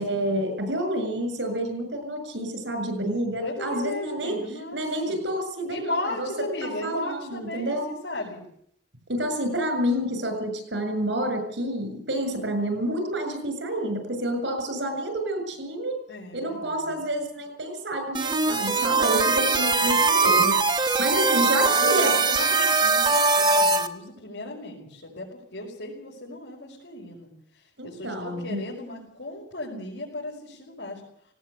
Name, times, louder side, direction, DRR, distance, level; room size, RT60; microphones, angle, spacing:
voice 1, 0.0-4.4 4.7-6.3 6.8-7.9 9.1-16.0 16.3-22.1 27.8-28.6, right 1 dB, 85° right, 7 dB, 6.9 m, -28 dB
voice 2, 3.4-5.2 5.7-8.4 16.1-17.1 21.2-31.0, left 2 dB, 85° left, -4 dB, 5.6 m, -36 dB
sound 1, 18.1-23.9, right 4 dB, 25° right, 1.2 m, -21 dB
18.5 x 18.0 x 8.3 m, 0.69 s
head